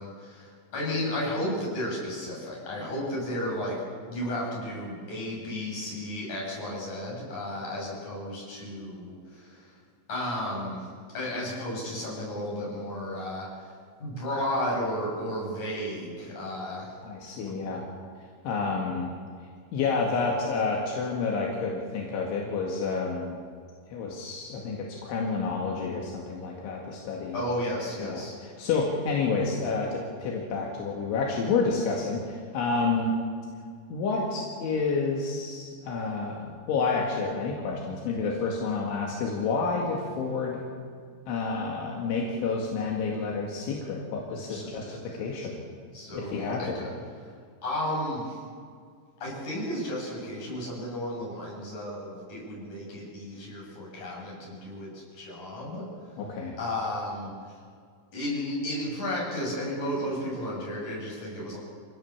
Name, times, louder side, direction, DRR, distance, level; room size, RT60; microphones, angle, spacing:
voice 1, 0.0-3.8 4.1-9.7 10.1-10.9 11.1-13.7 14.0-16.9 17.5-17.6 27.3-28.4 44.5-45.2 45.9-46.9 47.6-48.4 49.2-55.9 56.6-57.3 58.1-61.6, left 1 dB, 40° left, -4 dB, 8.7 m, -33 dB
voice 2, 17.0-17.9 18.4-19.1 19.7-23.4 23.9-27.5 28.0-33.2 33.9-40.6 41.3-45.6 46.1-46.8 56.2-56.5, left 4 dB, 75° left, -1 dB, 4.5 m, -29 dB
27.0 x 17.5 x 7.3 m, 2.1 s
omnidirectional pair, 5.5 m